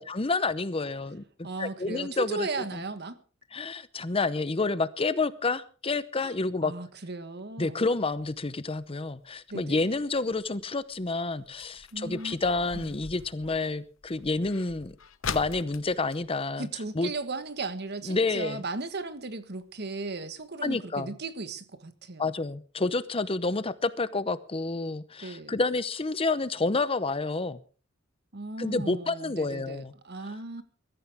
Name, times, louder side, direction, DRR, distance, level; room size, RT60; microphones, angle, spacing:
voice 1, 0.0-2.5 2.7-2.8 3.5-6.7 7.6-14.9 15.3-16.7 16.9-17.1 18.1-18.6 20.6-21.1 22.2-27.6 28.6-29.9, left 3 dB, 30° left, 0.8 m, -29 dB
voice 2, 1.4-3.2 6.2-6.3 6.6-7.8 9.5-9.9 11.9-12.4 12.7-12.9 16.6-22.3 25.2-25.6 28.3-30.6, right 3 dB, 55° right, 1.5 m, -36 dB
sound 1, 8.1-17.4 17.7-17.8 18.0-18.4 18.9-19.0 19.5-19.6 19.9-20.0 20.4-20.5, left 7 dB, 80° left, 0.9 m, -43 dB
22.5 x 14.0 x 3.6 m
head